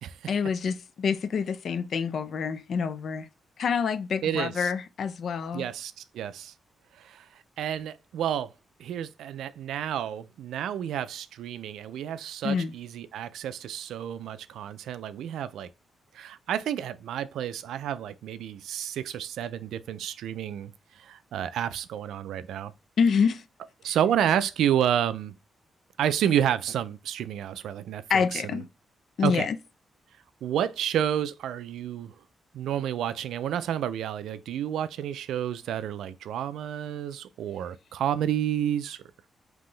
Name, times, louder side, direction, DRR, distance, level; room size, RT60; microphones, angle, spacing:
voice 1, 0.3-3.3 3.6-5.7 12.4-12.7 23.0-23.4 23.9-24.0 28.1-28.7 29.2-29.6, left 6 dB, 70° left, 0.4 m, -27 dB
voice 2, 4.2-4.7 5.5-6.5 7.0-7.3 7.6-8.5 8.8-15.7 16.1-20.7 21.0-22.7 23.8-25.4 26.0-28.6 29.2-29.5 30.4-32.1 32.5-39.0, right 10 dB, 85° right, 0.3 m, -30 dB
3.7 x 2.9 x 3.8 m
cardioid pair, 65°, 0 cm